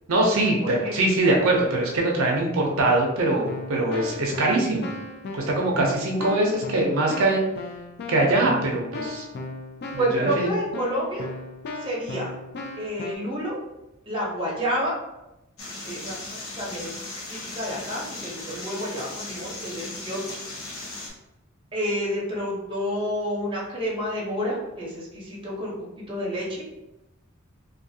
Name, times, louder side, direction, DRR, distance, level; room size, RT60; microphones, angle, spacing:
voice 1, 0.1-4.9 5.3-7.4 8.1-9.2 10.1-10.5, right 2 dB, 80° right, -1 dB, 0.5 m, -22 dB
voice 2, 0.6-1.0 10.0-11.3 11.8-12.3 12.8-13.6 14.1-15.0 15.8-17.0 17.3-20.2 21.7-25.8 26.1-26.7, equal, 25° right, -5 dB, 0.8 m, -29 dB
Keyboard (musical), 3.5-13.2, left 3 dB, 55° left, 0.3 m, -37 dB
sound 1, 15.6-21.1, left 2 dB, 80° left, 0.8 m, -37 dB
2.5 x 2.4 x 2.7 m, 0.93 s
head